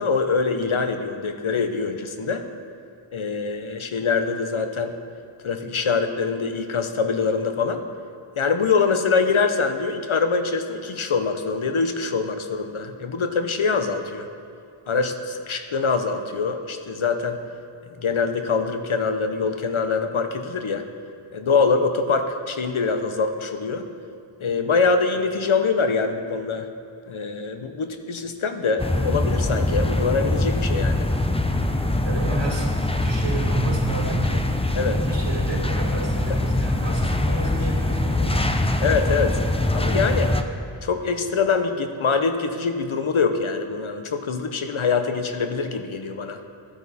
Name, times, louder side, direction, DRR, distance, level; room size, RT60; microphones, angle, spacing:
voice 1, 0.0-2.4 3.1-4.9 5.4-7.8 8.4-14.3 14.9-17.4 18.0-20.8 21.3-23.8 24.4-26.7 27.1-31.1 34.7-35.0 38.8-39.4 39.7-40.3 40.8-46.4, left 4 dB, 75° left, 7 dB, 0.9 m, -24 dB
sound 1, 28.8-40.4, left 1 dB, 10° left, 0.6 m, -23 dB
voice 2, 32.0-38.5, right 1 dB, 60° right, -1 dB, 2.1 m, -30 dB
14.0 x 9.4 x 4.1 m, 2.5 s
wide cardioid pair, 60°, 49 cm